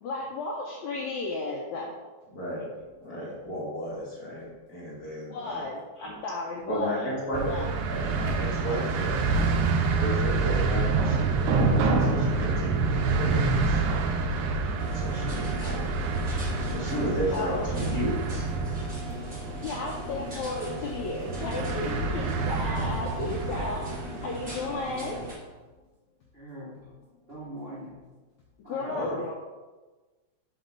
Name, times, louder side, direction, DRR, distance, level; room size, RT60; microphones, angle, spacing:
voice 1, 0.0-1.9 5.3-7.7 17.3-17.7 19.6-23.9 24.2-25.2 28.7-29.4, left 3 dB, 80° left, -1 dB, 1.6 m, -34 dB
voice 2, 2.3-2.7 3.0-5.7 6.0-6.1 6.7-7.5 7.8-9.3 10.0-13.8 14.9-16.0 16.7-18.5 19.6-19.7 20.6-20.8 23.9-24.1 28.8-29.2, equal, 45° left, -7 dB, 1.2 m, -34 dB
sound 1, 7.3-24.6, right 4 dB, 80° right, 1.8 m, -27 dB
sound 2, 14.8-25.3, equal, 20° right, 1.8 m, -39 dB
voice 3, 26.3-27.0 27.3-28.0 28.6-29.4, right 1 dB, 50° right, -8 dB, 0.7 m, -42 dB
6.4 x 4.4 x 5.2 m, 1.2 s
omnidirectional pair, 4.1 m